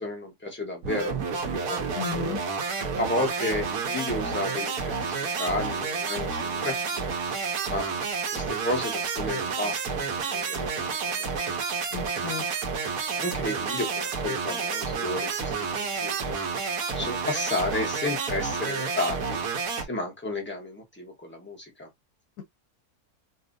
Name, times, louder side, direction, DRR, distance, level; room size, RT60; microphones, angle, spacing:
voice 1, 0.0-1.8 3.0-4.7 5.0-7.1 7.7-7.9 8.3-11.6 13.2-16.4 16.9-19.4 19.9-21.9, left 2 dB, 10° left, 0.8 m, -32 dB
sound 1, 0.8-19.8, right 5 dB, 80° right, 1.3 m, -30 dB
voice 2, 1.9-2.4 11.9-12.4, left 7 dB, 90° left, 1.2 m, -33 dB
5.2 x 2.3 x 2.5 m
omnidirectional pair, 1.6 m